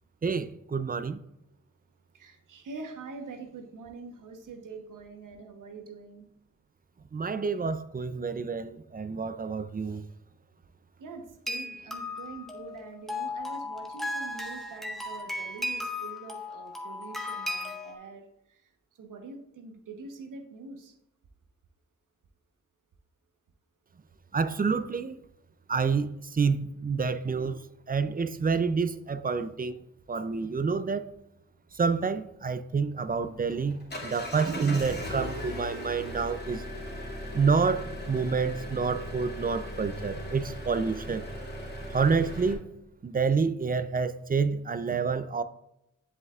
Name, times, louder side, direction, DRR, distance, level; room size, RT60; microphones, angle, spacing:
voice 1, 0.2-1.2 7.1-10.0 24.3-25.1 25.7-27.6 27.9-29.8 30.1-31.1 31.8-36.6 37.3-41.2 41.9-42.6 43.0-45.4, right 5 dB, 30° right, 0.5 m, -28 dB
voice 2, 2.1-6.3 11.0-18.6 19.0-20.9, right 4 dB, 80° right, 1.1 m, -44 dB
sound 1, 11.5-17.9, left 2 dB, ahead, 1.4 m, -36 dB
Engine, 33.0-42.5, left 1 dB, 30° left, 2.4 m, -38 dB
8.0 x 7.6 x 2.4 m
cardioid pair, 65°, 31 cm